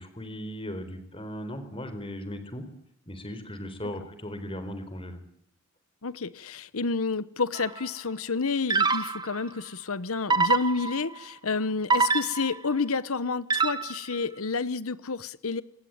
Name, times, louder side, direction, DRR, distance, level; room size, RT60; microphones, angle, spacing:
voice 1, 0.0-2.7 3.1-5.2, equal, 25° left, 4.0 m, -37 dB
voice 2, 6.0-15.6, left 4 dB, 70° left, 1.0 m, -30 dB
sound 1, 7.5-7.9 8.7-9.4 10.3-11.2 11.9-12.7 13.5-14.1, right 4 dB, 20° right, 1.6 m, -25 dB
27.0 x 21.5 x 8.9 m
head